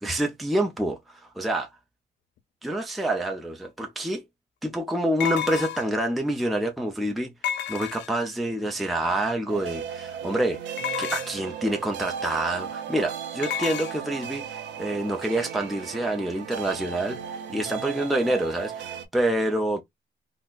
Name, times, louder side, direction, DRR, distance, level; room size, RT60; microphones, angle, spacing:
voice 1, 0.0-1.7 2.6-4.2 4.6-7.3 7.7-19.8, right 1 dB, ahead, 0.5 m, -27 dB
sound 1, 3.6-3.7 5.2-6.0 7.4-8.3 10.8-11.5 13.4-13.9, left 10 dB, 75° left, 0.5 m, -31 dB
sound 2, 9.5-19.0, right 8 dB, 85° right, 0.7 m, -36 dB
4.0 x 2.1 x 2.4 m
cardioid pair, 120°, 19 cm